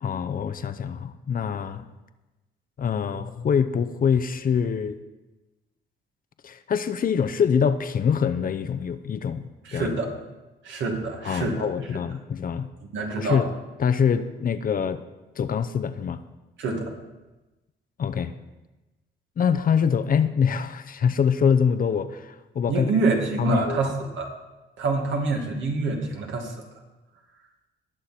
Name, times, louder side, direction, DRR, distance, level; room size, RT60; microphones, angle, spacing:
voice 1, 0.0-1.9 2.8-5.0 6.4-10.0 11.2-12.7 13.2-13.5 13.8-15.0 15.4-16.2 18.0-18.3 19.4-22.9 23.4-23.8, left 7 dB, 45° left, 10 dB, 0.7 m, -24 dB
voice 2, 9.6-10.1 10.6-11.7 12.9-13.5 16.6-16.9 22.7-24.3 24.8-26.5, right 3 dB, 75° right, 2 dB, 2.1 m, -26 dB
19.5 x 6.5 x 4.3 m, 1.1 s
cardioid pair, 90°, 20 cm